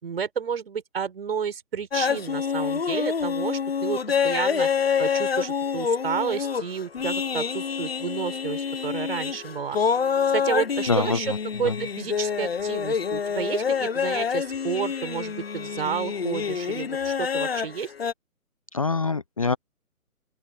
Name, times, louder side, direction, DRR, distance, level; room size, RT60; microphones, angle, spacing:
voice 1, 0.0-4.7 5.0-9.8 10.3-17.9, right 7 dB, 40° right, 5.0 m, -31 dB
sound 1, 1.9-18.1, left 6 dB, 40° left, 1.4 m, -27 dB
voice 2, 10.9-11.2 11.6-11.7 18.7-19.6, left 4 dB, 25° left, 0.8 m, -24 dB
open air
figure-of-eight pair, 145°, 44 cm